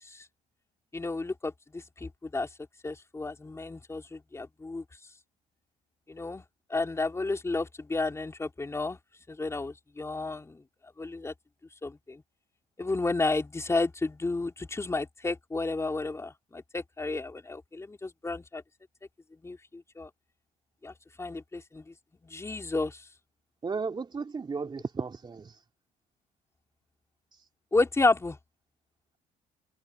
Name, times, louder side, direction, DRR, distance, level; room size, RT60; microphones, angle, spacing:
voice 1, 0.9-2.5 2.8-4.8 6.1-6.4 6.7-9.0 9.3-10.6 11.0-11.3 11.8-12.2 12.8-18.6 19.4-20.1 20.8-21.9 22.2-23.0 27.7-28.4, left 3 dB, 15° left, 3.3 m, -31 dB
voice 2, 23.6-25.5, right 4 dB, 25° right, 3.1 m, -34 dB
cardioid pair, 110°, 17 cm